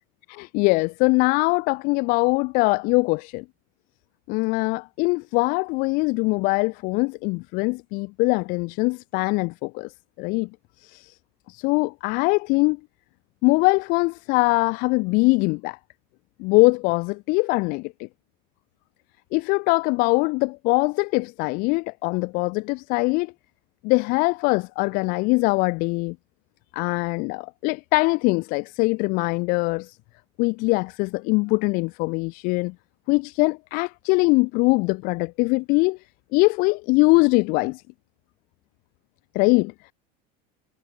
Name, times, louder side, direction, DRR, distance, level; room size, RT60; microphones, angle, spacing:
voice 1, 0.3-3.4 4.3-9.9 10.2-10.5 10.8-11.1 11.5-12.8 13.4-15.8 16.4-18.1 19.3-23.3 23.8-26.2 26.7-30.0 30.4-32.7 33.1-36.0 36.3-37.8 39.3-39.7, left 27 dB, 45° left, 0.4 m, -22 dB
supercardioid pair, 160°, 21 cm